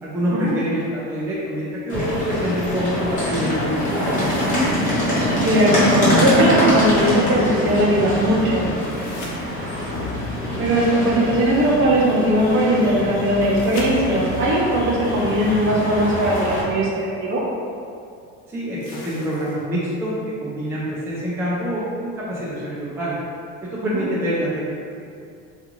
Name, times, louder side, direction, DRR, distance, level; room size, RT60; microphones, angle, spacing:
voice 1, 0.0-4.6 18.5-20.1 20.4-23.2 23.6-24.7, equal, 10° right, -8 dB, 0.3 m, -26 dB
sound 1, 1.9-16.6, left 1 dB, 25° left, 0.9 m, -23 dB
voice 2, 5.4-8.6 10.6-16.9 17.2-17.4 23.9-24.0, right 1 dB, 40° right, -4 dB, 0.6 m, -19 dB
sound 2, 8.8-10.1 13.5-14.5 16.4-16.5 18.8-19.8 22.8-22.9, left 2 dB, 80° left, 0.7 m, -39 dB
2.4 x 2.4 x 2.9 m, 2.4 s
cardioid pair, 135°, 32 cm